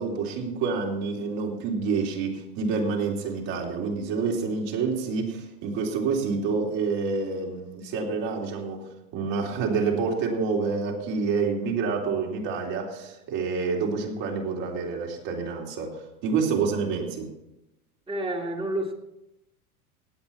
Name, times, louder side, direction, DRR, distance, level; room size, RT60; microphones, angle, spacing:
voice 1, 0.0-17.3, right 5 dB, 50° right, 0 dB, 3.6 m, -28 dB
voice 2, 18.1-18.9, right 1 dB, 10° right, 3 dB, 1.9 m, -29 dB
17.5 x 8.7 x 4.4 m, 0.88 s
hypercardioid pair, 115°, 44 cm